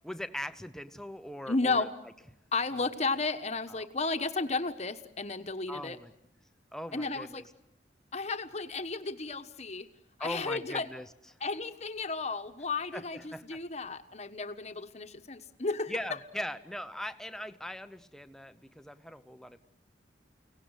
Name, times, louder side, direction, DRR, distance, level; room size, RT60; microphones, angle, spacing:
voice 1, 0.0-1.9 2.8-2.9 3.7-3.9 5.7-6.1 6.7-7.5 10.2-11.1 12.9-13.6 15.9-19.6, left 1 dB, 5° left, 10 dB, 0.8 m, -40 dB
voice 2, 1.5-1.9 2.5-6.0 6.9-7.4 8.1-9.9 10.2-10.9 11.4-15.9, left 3 dB, 35° left, 8 dB, 1.3 m, -33 dB
30.0 x 18.0 x 8.2 m, 0.82 s
head